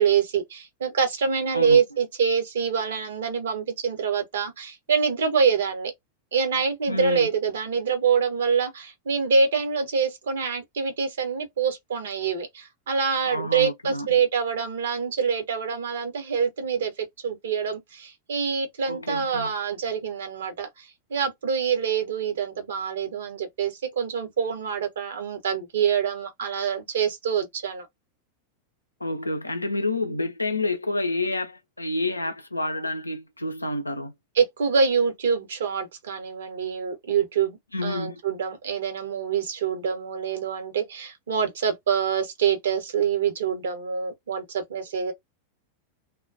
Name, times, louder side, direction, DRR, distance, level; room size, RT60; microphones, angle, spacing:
voice 1, 0.0-5.9 6.3-16.9 17.2-27.9 34.3-45.1, right 6 dB, 65° right, 0.8 m, -25 dB
voice 2, 6.9-7.3 13.2-14.1 18.9-19.5 29.0-34.1 37.7-38.2, left 2 dB, 85° left, 0.4 m, -29 dB
2.3 x 2.2 x 2.5 m
figure-of-eight pair, 90°, 0 cm